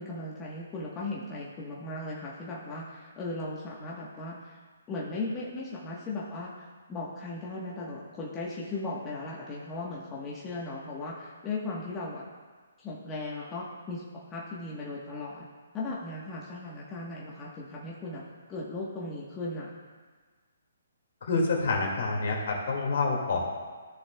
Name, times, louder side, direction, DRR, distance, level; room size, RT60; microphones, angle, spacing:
voice 1, 0.0-4.6 4.9-12.2 12.8-15.5 15.7-18.2 18.5-19.7, left 2 dB, 20° left, -5 dB, 1.3 m, -37 dB
voice 2, 21.2-23.4, left 3 dB, 60° left, -1 dB, 2.2 m, -27 dB
14.0 x 6.4 x 2.3 m, 1.5 s
hypercardioid pair, 145°, 0 cm